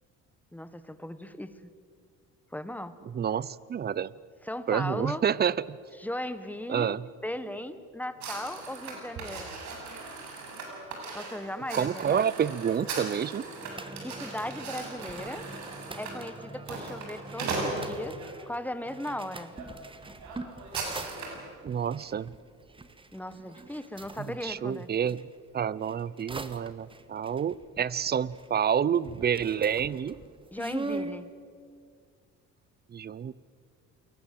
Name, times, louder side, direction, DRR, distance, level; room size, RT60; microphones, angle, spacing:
voice 1, 0.5-1.7 2.5-2.9 4.4-5.2 6.0-7.0 7.2-9.5 11.1-12.3 14.0-15.4 16.0-18.2 18.5-19.5 23.1-24.9 30.5-31.3, left 1 dB, 5° left, 12 dB, 1.4 m, -37 dB
voice 2, 3.1-4.1 4.7-5.8 6.7-7.1 11.7-13.4 21.6-22.3 24.2-25.2 25.5-30.2 32.9-33.3, right 8 dB, 30° right, 20 dB, 0.7 m, -28 dB
sound 1, 8.2-18.3 18.9-19.2 19.5-19.7 19.9-21.4, right 3 dB, 65° right, 7.7 m, -38 dB
sound 2, 13.6-25.2 25.8-28.7 28.9-31.2, right 3 dB, 15° right, 1.5 m, -43 dB
28.5 x 22.0 x 7.8 m, 2.1 s
cardioid pair, 120°, 31 cm